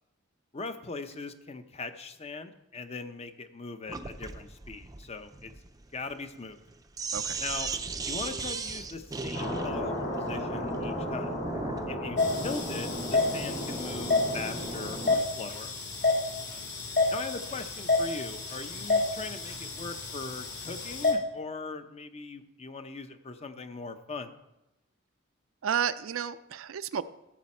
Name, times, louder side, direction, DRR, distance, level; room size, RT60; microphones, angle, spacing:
voice 1, 0.5-5.5 5.9-6.6 7.4-7.7 8.0-11.3 11.9-15.7 17.1-24.3, left 3 dB, 30° left, 9 dB, 0.6 m, -40 dB
Sink (filling or washing), 3.9-11.9, right 4 dB, 15° right, 0.5 m, -37 dB
sound 1, 9.3-15.1, equal, 75° left, 3.9 m, -34 dB
sound 2, 12.2-21.1, left 3 dB, 55° left, 3.0 m, -30 dB
voice 2, 25.6-27.0, right 8 dB, 70° right, 13 dB, 0.4 m, -31 dB
13.5 x 7.2 x 4.3 m, 0.94 s
head